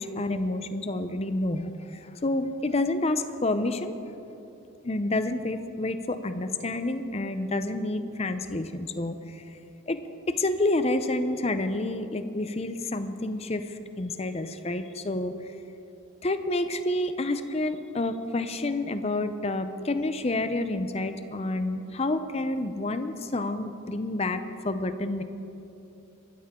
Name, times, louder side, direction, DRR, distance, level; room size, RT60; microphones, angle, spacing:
voice 1, 0.0-3.9 4.8-9.4 9.9-10.0 10.3-15.3 16.2-25.2, left 2 dB, 30° left, 10 dB, 0.6 m, -29 dB
22.5 x 13.0 x 3.8 m, 2.9 s
head